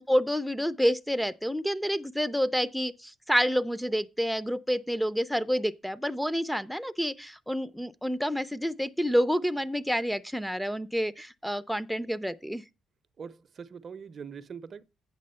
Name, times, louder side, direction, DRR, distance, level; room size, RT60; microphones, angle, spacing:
voice 1, 0.0-12.6, equal, ahead, 0.5 m, -28 dB
voice 2, 13.2-14.8, right 6 dB, 50° right, 0.6 m, -42 dB
8.6 x 6.0 x 5.5 m
cardioid pair, 90°, 0 cm